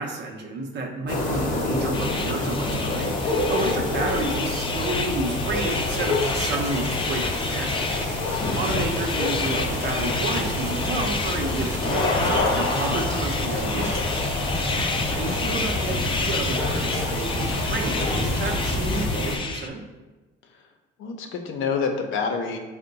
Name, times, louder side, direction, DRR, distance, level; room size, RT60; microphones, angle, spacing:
voice 1, 0.0-7.8 8.6-14.2 14.8-19.8, right 3 dB, 60° right, 3 dB, 0.6 m, -31 dB
sound 1, 1.1-19.4, left 2 dB, 40° left, 0.9 m, -27 dB
sound 2, 1.9-19.7, left 4 dB, 25° left, 0.3 m, -31 dB
sound 3, 5.5-19.1, equal, 15° right, 0.6 m, -32 dB
voice 2, 15.2-15.5 21.0-22.6, left 5 dB, 80° left, 4 dB, 0.6 m, -28 dB
4.5 x 2.1 x 3.8 m, 1.2 s
cardioid pair, 90°, 20 cm